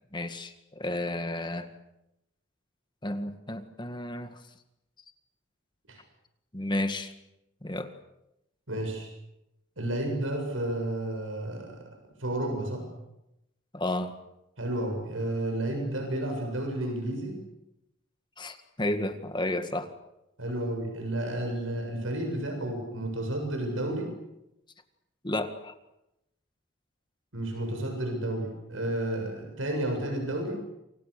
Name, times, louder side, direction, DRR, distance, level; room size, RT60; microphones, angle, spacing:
voice 1, 0.1-1.7 3.0-4.3 6.5-7.1 7.6-7.9 13.7-14.1 18.4-19.9 25.2-25.7, left 1 dB, 25° left, 8 dB, 1.9 m, -32 dB
voice 2, 8.7-9.1 9.8-11.8 12.2-12.8 14.6-17.4 20.4-24.1 27.3-30.6, right 1 dB, 90° right, 3 dB, 7.4 m, -31 dB
28.5 x 26.0 x 6.7 m, 0.88 s
head